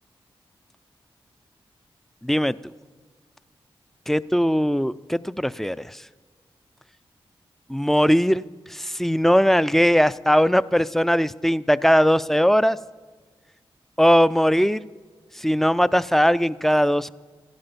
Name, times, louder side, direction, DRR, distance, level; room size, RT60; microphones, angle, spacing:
voice 1, 2.2-2.6 4.1-6.0 7.7-8.4 8.7-12.8 14.0-14.9 15.3-17.1, equal, 5° left, 17 dB, 0.3 m, -19 dB
15.0 x 11.5 x 5.3 m, 1.5 s
cardioid pair, 50°, 10 cm